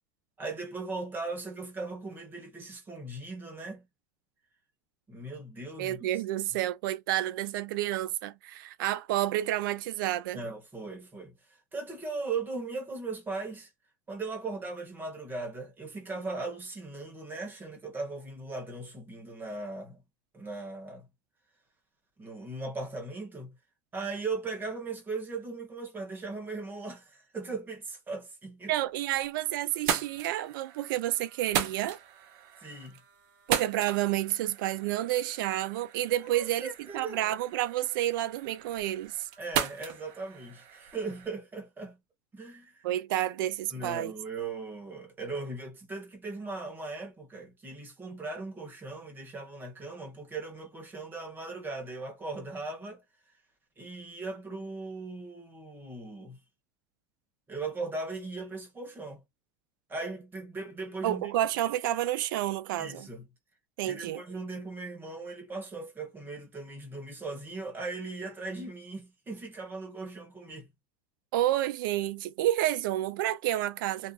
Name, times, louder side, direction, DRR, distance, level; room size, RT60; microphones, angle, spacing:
voice 1, 0.4-3.8 5.1-6.0 10.3-11.3 11.7-13.7 14.1-20.0 20.3-21.0 22.2-23.5 23.9-28.7 32.6-33.0 36.3-37.4 39.4-42.0 42.3-42.9 43.7-53.0 53.8-56.4 57.5-59.2 59.9-61.3 62.8-63.3 63.8-70.7, right 3 dB, 20° right, 1.3 m, -38 dB
voice 2, 5.8-10.4 28.7-32.0 33.5-36.7 36.9-39.3 42.8-44.1 61.0-63.1 63.8-64.2 71.3-74.1, right 13 dB, 90° right, 0.4 m, -30 dB
sound 1, 28.8-29.4 29.7-41.3, right 9 dB, 65° right, 0.8 m, -37 dB
2.7 x 2.4 x 2.4 m
supercardioid pair, 145°, 11 cm